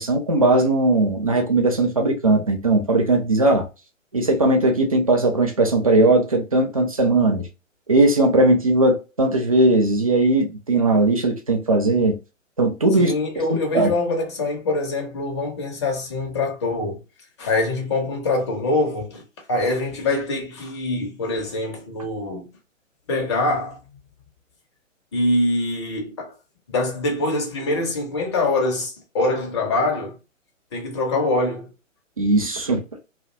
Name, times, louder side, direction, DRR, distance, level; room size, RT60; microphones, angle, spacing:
voice 1, 0.0-3.7 4.1-7.5 7.9-12.2 12.6-13.1 13.5-13.9 32.2-32.8, right 2 dB, 30° right, 0.3 m, -18 dB
voice 2, 13.0-17.0 17.4-19.2 19.5-22.5 23.1-23.8 25.1-26.3 26.7-30.2 30.7-31.7, left 2 dB, 20° left, 0.5 m, -24 dB
2.5 x 2.1 x 2.5 m
figure-of-eight pair, 135°, 40 cm